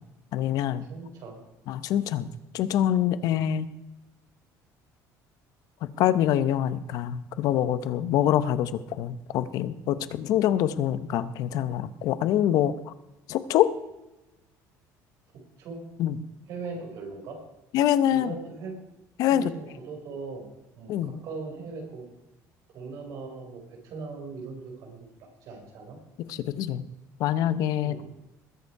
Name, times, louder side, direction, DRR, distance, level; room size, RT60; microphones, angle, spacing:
voice 1, 0.3-0.8 1.7-2.3 2.5-3.7 5.8-12.9 13.3-13.7 16.0-16.2 17.7-18.3 19.2-19.5 20.9-21.2 26.3-26.8 27.2-27.9, left 11 dB, 60° left, 14 dB, 0.9 m, -25 dB
voice 2, 0.9-1.4 3.2-3.4 15.3-15.8 16.5-17.4 18.1-18.8 19.3-20.5 20.7-22.0 22.7-26.0 27.8-28.1, right 4 dB, 55° right, 1 dB, 5.0 m, -40 dB
20.5 x 8.2 x 4.8 m, 0.98 s
cardioid pair, 160°, 7 cm